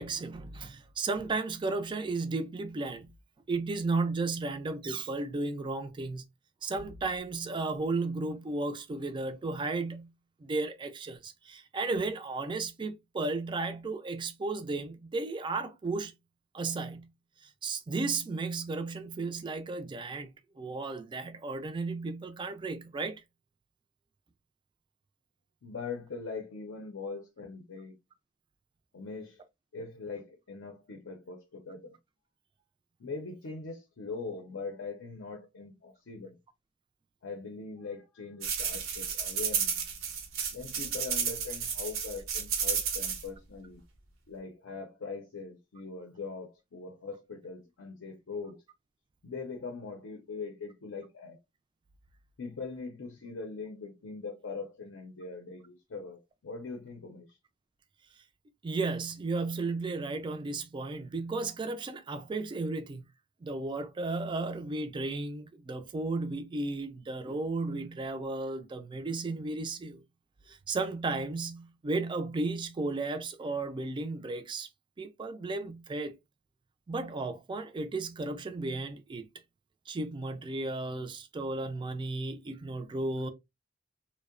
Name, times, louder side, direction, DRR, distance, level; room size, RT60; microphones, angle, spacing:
voice 1, 0.0-3.1 3.5-6.2 6.6-10.1 10.4-16.1 16.5-17.1 17.4-20.3 20.6-23.2 58.6-63.0 63.4-70.0 70.5-74.7 75.0-76.1 76.9-79.3 79.9-83.3, right 3 dB, 25° right, 0.3 m, -34 dB
voice 2, 25.6-28.0 28.9-29.4 29.7-32.0 33.0-36.4 37.2-39.8 40.5-43.8 44.3-48.6 49.2-51.4 52.4-57.3, left 4 dB, 70° left, 0.5 m, -41 dB
sound 1, 38.4-43.2, right 7 dB, 90° right, 0.7 m, -32 dB
2.6 x 2.0 x 2.4 m
head